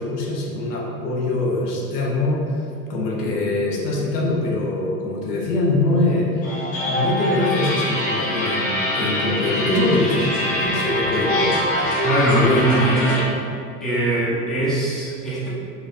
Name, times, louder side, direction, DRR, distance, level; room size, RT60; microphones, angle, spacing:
voice 1, 0.0-2.6 2.9-6.5 6.8-11.5 12.3-12.6 12.9-13.0, left 2 dB, 75° left, -2 dB, 0.7 m, -23 dB
sound 1, 6.4-13.2, left 1 dB, 30° left, 1.1 m, -24 dB
voice 2, 12.0-13.2 13.8-15.5, right 1 dB, ahead, -9 dB, 0.9 m, -21 dB
4.1 x 2.2 x 2.7 m, 2.4 s
figure-of-eight pair, 80°, 48 cm